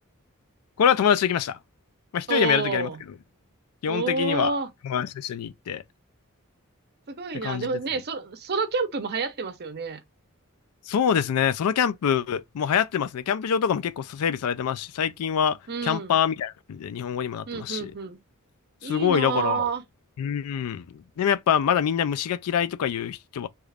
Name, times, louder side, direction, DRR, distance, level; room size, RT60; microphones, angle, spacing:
voice 1, 0.8-1.6 2.1-2.9 3.8-4.6 4.8-5.8 7.4-7.7 10.9-15.6 15.8-17.9 18.8-19.7 20.2-23.5, left 8 dB, 80° left, 0.3 m, -25 dB
voice 2, 2.3-3.0 3.9-4.7 7.1-10.0 15.7-16.2 17.5-18.2 18.8-19.8, right 4 dB, 45° right, 0.6 m, -29 dB
3.0 x 2.4 x 3.3 m
head